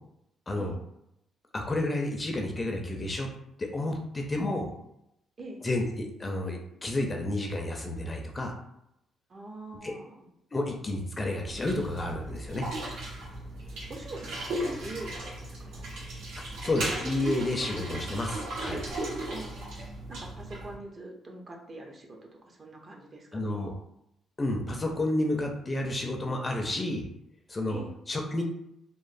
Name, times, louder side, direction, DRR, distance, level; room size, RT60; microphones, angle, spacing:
voice 1, 1.5-3.3 3.6-4.7 5.6-5.8 6.2-8.6 9.8-9.9 10.5-12.7 16.6-18.8 23.3-23.7 24.4-27.0 27.5-27.8 28.1-28.4, left 1 dB, 25° left, 2 dB, 0.5 m, -30 dB
voice 2, 9.3-10.3 13.9-15.9 19.3-19.7 20.1-23.7 27.7-27.9, right 2 dB, 40° right, 1 dB, 0.6 m, -44 dB
sound 1, 11.5-20.7, right 1 dB, 90° right, 0.9 m, -36 dB
2.9 x 2.1 x 2.5 m, 0.78 s
cardioid pair, 90°, 0 cm